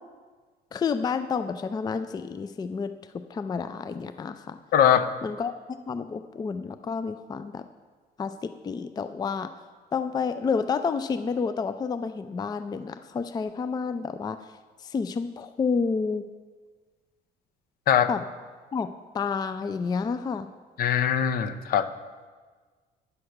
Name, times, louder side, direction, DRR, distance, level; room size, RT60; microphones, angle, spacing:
voice 1, 0.7-2.9 3.3-4.6 5.2-5.5 5.9-7.6 8.2-9.5 9.9-14.4 14.8-16.2 18.1-18.2 18.7-18.9 19.1-20.5, left 5 dB, 25° left, 11 dB, 0.4 m, -29 dB
voice 2, 4.7-5.1 17.9-18.1 20.8-21.9, left 9 dB, 60° left, 12 dB, 0.7 m, -21 dB
9.7 x 5.7 x 6.5 m, 1.5 s
cardioid pair, 110°, 17 cm